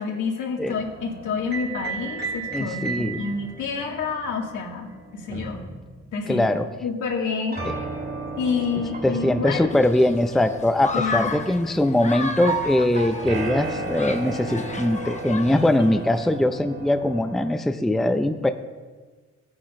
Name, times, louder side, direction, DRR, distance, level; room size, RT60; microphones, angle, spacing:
voice 1, 0.0-5.6 6.1-6.4 6.8-7.8 8.4-9.8 10.9-11.4, left 5 dB, 75° left, -1 dB, 2.2 m, -28 dB
sound 1, 0.7-6.6 7.5-17.5, right 3 dB, 30° right, 2.3 m, -34 dB
voice 2, 2.5-3.2 6.3-6.7 7.6-7.7 9.0-18.5, left 1 dB, ahead, 7 dB, 0.5 m, -22 dB
Human group actions, 9.7-16.3, left 3 dB, 25° left, 0.9 m, -35 dB
15.5 x 9.5 x 2.6 m, 1.4 s
cardioid pair, 90°, 30 cm